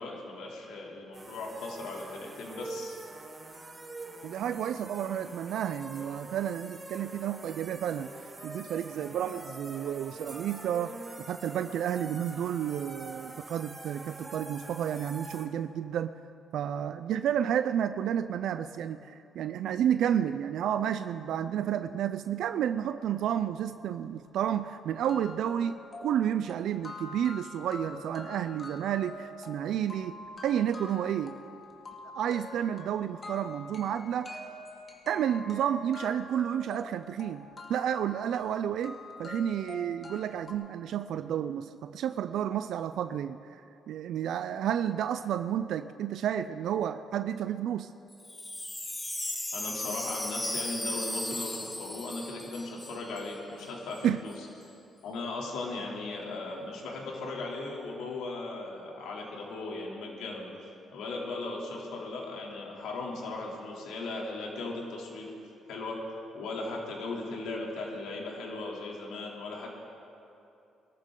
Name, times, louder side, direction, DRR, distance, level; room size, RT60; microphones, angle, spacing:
voice 1, 0.0-3.0 49.5-54.3 55.0-60.5 60.9-65.3 65.7-66.0 66.3-69.7, left 2 dB, 85° left, -2 dB, 3.1 m, -37 dB
sound 1, 1.1-15.5, right 2 dB, 25° right, 1.9 m, -45 dB
voice 2, 4.2-8.1 8.4-10.9 11.3-16.1 16.5-30.2 30.4-31.4 32.1-34.4 35.1-47.9 54.0-54.2, right 9 dB, 75° right, 11 dB, 0.4 m, -31 dB
sound 2, 24.1-24.2 24.5-24.6 25.0-40.5, left 2 dB, 35° left, 2.3 m, -45 dB
Wind chime, 48.1-53.3 53.6-53.7 53.9-54.4, left 1 dB, 15° left, 1.1 m, -36 dB
23.0 x 13.5 x 3.8 m, 2.7 s
cardioid pair, 90°, 0 cm